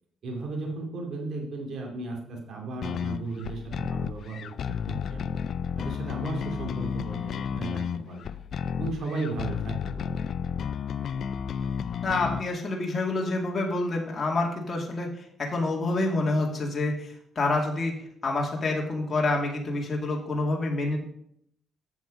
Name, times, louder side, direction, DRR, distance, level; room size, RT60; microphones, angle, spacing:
voice 1, 0.2-5.3 5.8-8.4 8.8-10.1, right 3 dB, 65° right, 1 dB, 2.4 m, -35 dB
sound 1, 2.8-12.4, left 7 dB, 60° left, 0.4 m, -32 dB
voice 2, 12.0-15.1 15.4-17.9 18.2-21.0, left 2 dB, 35° left, -1 dB, 2.2 m, -27 dB
7.9 x 7.2 x 5.2 m, 0.70 s
cardioid pair, 90°, 0 cm